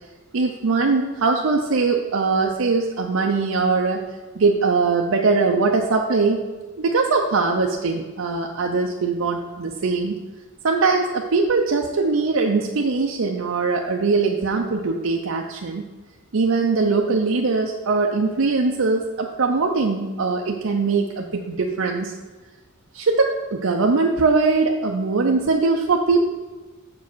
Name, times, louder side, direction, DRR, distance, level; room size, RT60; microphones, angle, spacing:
voice 1, 0.3-4.0 4.4-6.4 6.8-10.2 10.6-15.8 16.3-22.1 22.9-26.2, right 4 dB, 80° right, 1 dB, 0.6 m, -21 dB
7.3 x 4.8 x 6.1 m, 1.2 s
head